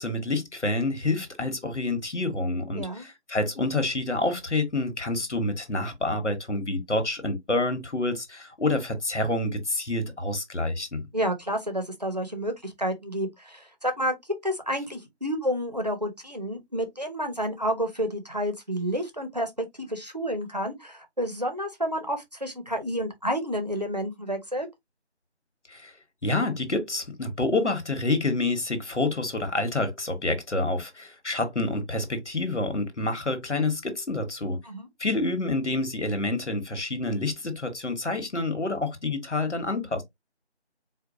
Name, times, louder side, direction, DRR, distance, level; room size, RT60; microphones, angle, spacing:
voice 1, 0.0-11.1 25.7-25.9 26.2-34.6 35.0-40.0, left 2 dB, 90° left, 1.3 m, -28 dB
voice 2, 2.7-3.1 11.1-14.2 14.4-24.7 34.6-34.9, equal, 35° right, 0.7 m, -30 dB
4.4 x 2.3 x 2.6 m
figure-of-eight pair, 175°, 34 cm